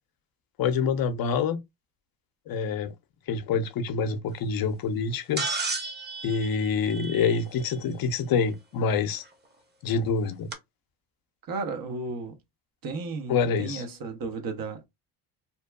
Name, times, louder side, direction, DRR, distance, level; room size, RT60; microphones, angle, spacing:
voice 1, 0.6-1.6 2.5-2.9 3.3-5.5 6.2-9.2 9.8-10.5 13.3-13.8, left 5 dB, 55° left, 0.6 m, -26 dB
sound 1, 5.4-7.7 9.2-9.3 10.5-10.6, right 3 dB, 25° right, 1.0 m, -33 dB
voice 2, 11.5-12.4 12.8-14.9, right 3 dB, 55° right, 0.9 m, -34 dB
2.9 x 2.2 x 2.2 m
supercardioid pair, 75°, 42 cm